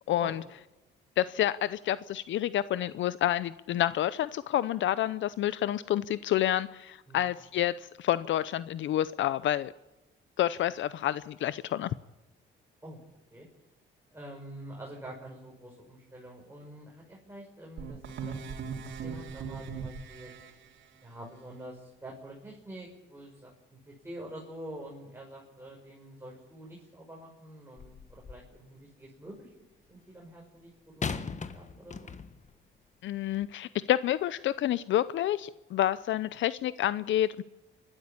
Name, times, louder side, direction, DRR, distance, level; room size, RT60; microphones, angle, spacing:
voice 1, 0.1-0.4 1.2-9.7 10.4-11.9 33.0-37.4, left 12 dB, 70° left, 16 dB, 0.6 m, -29 dB
voice 2, 14.1-20.3 21.0-29.5 29.9-32.1, right 1 dB, 10° right, -2 dB, 6.3 m, -47 dB
sound 1, 17.8-20.5, right 6 dB, 70° right, 3.5 m, -39 dB
sound 2, 27.8-28.6 31.0-32.5 33.3-33.5, left 5 dB, 35° left, 1.5 m, -38 dB
28.0 x 12.5 x 8.6 m, 1.0 s
cardioid pair, 90°, 20 cm